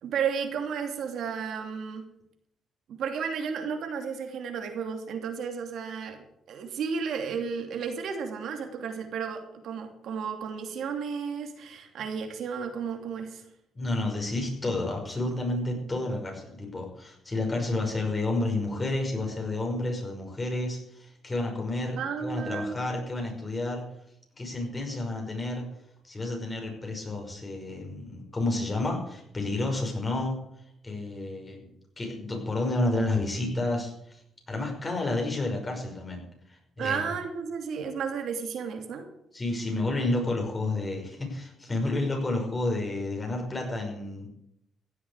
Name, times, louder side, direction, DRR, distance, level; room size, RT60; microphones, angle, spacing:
voice 1, 0.0-2.0 2.9-13.4 22.0-22.7 36.8-39.1, right 6 dB, 70° right, 5 dB, 2.9 m, -33 dB
voice 2, 13.7-23.8 24.3-25.6 26.0-30.4 30.8-31.7 32.0-33.9 34.5-36.2 36.5-37.0 39.3-44.3, left 2 dB, 25° left, 2 dB, 5.5 m, -30 dB
15.5 x 8.6 x 8.3 m, 0.77 s
cardioid pair, 90°, 0 cm